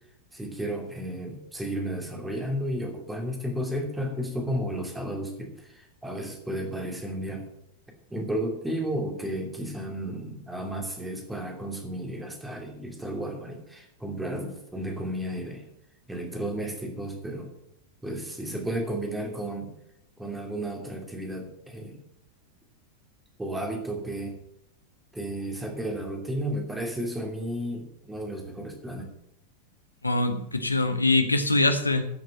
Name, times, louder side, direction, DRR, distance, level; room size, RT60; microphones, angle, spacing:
voice 1, 0.3-7.5 8.1-15.6 16.1-17.5 18.0-19.7 20.2-22.0 23.4-24.4 25.1-29.1, right 1 dB, 5° right, 2 dB, 2.8 m, -33 dB
voice 2, 30.0-32.1, left 2 dB, 80° left, 8 dB, 1.3 m, -23 dB
13.0 x 6.4 x 7.6 m, 0.78 s
figure-of-eight pair, 90°, 0 cm